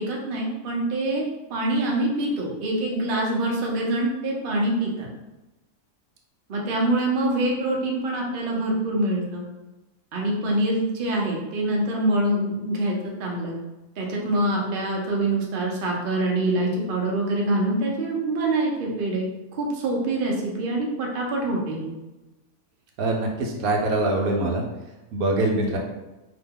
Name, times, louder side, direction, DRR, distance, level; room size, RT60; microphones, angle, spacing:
voice 1, 0.0-5.1 6.5-9.4 10.1-13.5 14.0-19.3 19.5-21.9, right 1 dB, 60° right, -2 dB, 0.5 m, -25 dB
voice 2, 23.0-24.6 25.1-25.8, right 2 dB, 75° right, 0 dB, 1.0 m, -23 dB
2.8 x 2.1 x 3.5 m, 1.0 s
omnidirectional pair, 1.6 m